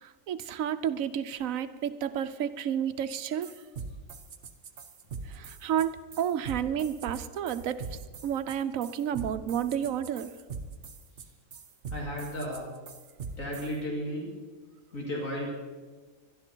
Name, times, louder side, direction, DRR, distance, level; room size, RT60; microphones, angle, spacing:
voice 1, 0.0-3.5 5.3-7.8 8.2-10.3, right 9 dB, 75° right, 12 dB, 1.1 m, -31 dB
sound 1, 3.1-3.2 3.4-13.7, right 5 dB, 60° right, 1.3 m, -42 dB
voice 2, 11.9-12.7 13.4-14.3 14.9-15.5, equal, 75° left, -1 dB, 2.9 m, -34 dB
21.5 x 12.5 x 4.5 m, 1.4 s
omnidirectional pair, 1.4 m